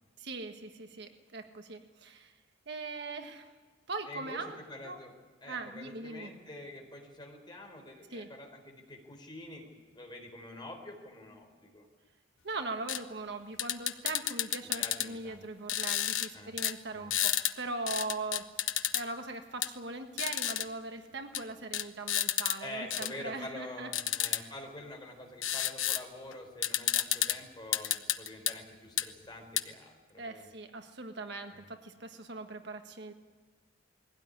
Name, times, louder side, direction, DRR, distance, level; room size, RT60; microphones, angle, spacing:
voice 1, 0.2-2.3 2.7-3.5 3.9-4.6 4.8-5.0 5.5-6.3 8.1-8.3 12.4-23.9 24.4-24.5 30.2-33.1, right 3 dB, 60° right, 6 dB, 1.6 m, -40 dB
voice 2, 4.1-11.9 14.8-15.4 16.3-16.6 16.9-17.2 22.6-30.5 31.5-31.7, left 1 dB, 25° left, 2 dB, 4.3 m, -46 dB
sound 1, 12.9-13.0 13.6-15.1 15.7-16.3 16.6-16.7 17.1-17.5 17.9-19.0 19.6-19.7 20.2-20.7 21.3-21.4 21.7-22.6 22.9-23.1 23.9-24.4 25.4-26.0 26.3-26.4 26.6-27.4 27.7-28.5 29.0-29.1 29.6-29.7, left 12 dB, 90° left, 1.0 m, -30 dB
21.5 x 17.0 x 9.9 m, 1.5 s
head